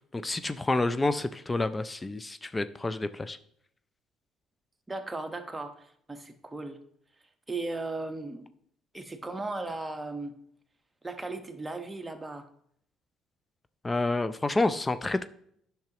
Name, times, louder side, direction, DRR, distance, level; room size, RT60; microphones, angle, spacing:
voice 1, 0.0-3.4 13.8-15.2, left 2 dB, 20° left, 12 dB, 0.5 m, -29 dB
voice 2, 4.9-6.8 7.5-8.5 8.9-10.3 11.0-12.5, right 2 dB, 15° right, 6 dB, 1.1 m, -36 dB
10.5 x 5.8 x 3.0 m, 0.69 s
supercardioid pair, 65°, 0 cm